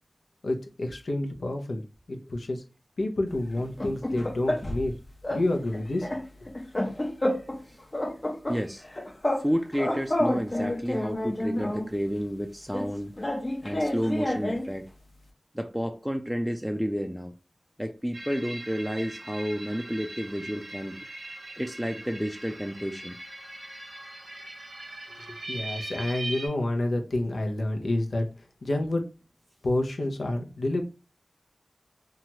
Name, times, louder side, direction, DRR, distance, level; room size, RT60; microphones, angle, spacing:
voice 1, 0.4-1.8 2.1-2.6 3.0-5.0 5.3-6.1 25.1-29.1 29.6-30.8, left 1 dB, 80° left, 0.6 m, -29 dB
sound 1, 3.5-4.9 5.2-5.5 5.7-7.6 7.9-9.5 9.7-11.9 12.7-14.7, left 1 dB, 40° left, 0.6 m, -29 dB
voice 2, 8.5-8.8 9.4-13.1 13.6-14.9 15.5-17.3 17.8-21.0 21.6-23.2, equal, ahead, 0.4 m, -31 dB
sound 2, 18.1-26.5, right 2 dB, 90° right, 0.9 m, -40 dB
2.9 x 2.3 x 2.8 m
cardioid pair, 40°, 0 cm